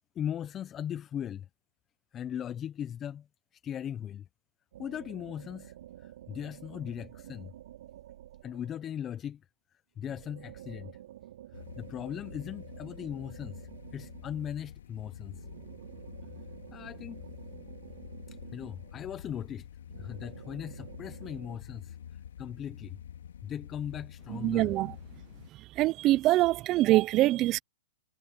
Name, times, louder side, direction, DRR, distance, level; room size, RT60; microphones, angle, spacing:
voice 1, 0.1-1.5 2.1-3.3 3.6-4.3 4.8-7.5 8.4-9.4 10.0-10.9 11.5-15.5 16.7-17.2 18.3-19.7 20.0-22.0 22.4-23.0 23.4-24.7, left 9 dB, 20° left, 1.0 m, -38 dB
sound 1, 4.7-8.9 10.0-14.7 15.3-19.3 19.9-21.6, right 12 dB, 65° right, 5.4 m, -50 dB
sound 2, 11.5-25.5, left 9 dB, 75° left, 4.8 m, -48 dB
voice 2, 24.3-24.9 25.8-27.6, right 16 dB, 30° right, 0.8 m, -24 dB
hypercardioid pair, 135°, 0 cm